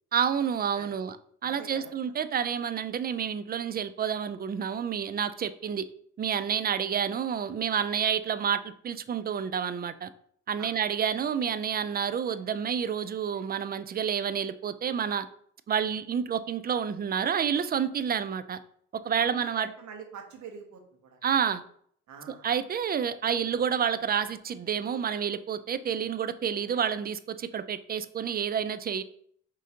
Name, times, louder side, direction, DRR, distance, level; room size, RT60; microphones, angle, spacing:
voice 1, 0.1-1.2 1.4-5.8 6.2-10.1 10.5-15.3 15.7-18.6 19.0-19.7 21.2-21.6 22.3-29.0, right 8 dB, 30° right, 12 dB, 0.4 m, -29 dB
voice 2, 1.4-1.9 10.6-10.7 19.2-21.2 22.1-22.5, right 6 dB, 70° right, 3 dB, 1.1 m, -45 dB
5.0 x 3.8 x 2.8 m, 0.63 s
cardioid pair, 90°, 30 cm